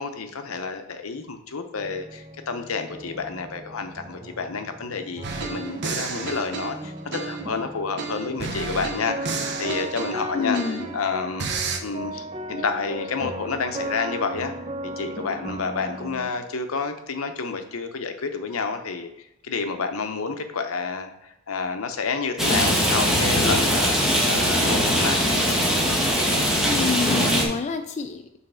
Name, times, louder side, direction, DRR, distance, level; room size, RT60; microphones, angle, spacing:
voice 1, 0.0-14.5 15.0-24.0 24.3-25.2, left 4 dB, 75° left, 7 dB, 0.7 m, -29 dB
sound 1, 1.8-16.3, right 1 dB, 25° right, 0.6 m, -37 dB
sound 2, 5.2-7.6 8.0-11.0 11.4-11.8, right 4 dB, 55° right, 0.8 m, -31 dB
voice 2, 10.3-10.8 26.6-28.4, left 4 dB, 35° left, 7 dB, 0.3 m, -27 dB
Rain, 22.4-27.5, equal, ahead, 1.4 m, -21 dB
5.6 x 4.1 x 5.6 m, 0.86 s
head